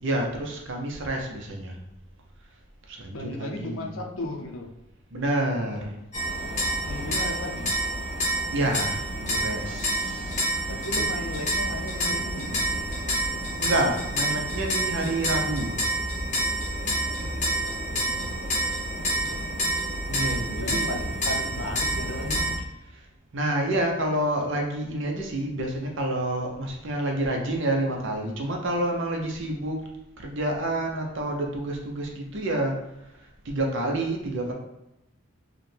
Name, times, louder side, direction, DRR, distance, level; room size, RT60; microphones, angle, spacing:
voice 1, 0.0-1.8 2.9-3.9 5.1-5.9 8.5-10.5 13.6-15.8 20.1-20.9 22.9-23.1 23.3-29.9 30.2-32.8 33.2-34.5, right 1 dB, 55° right, 1 dB, 0.7 m, -28 dB
voice 2, 3.1-4.7 6.9-7.7 10.7-12.6 17.0-18.6 18.9-19.7 20.5-22.5, left 1 dB, 70° left, 2 dB, 0.6 m, -36 dB
sound 1, 6.1-22.6, right 1 dB, 35° left, 0.7 m, -28 dB
4.9 x 2.2 x 3.3 m, 0.89 s
head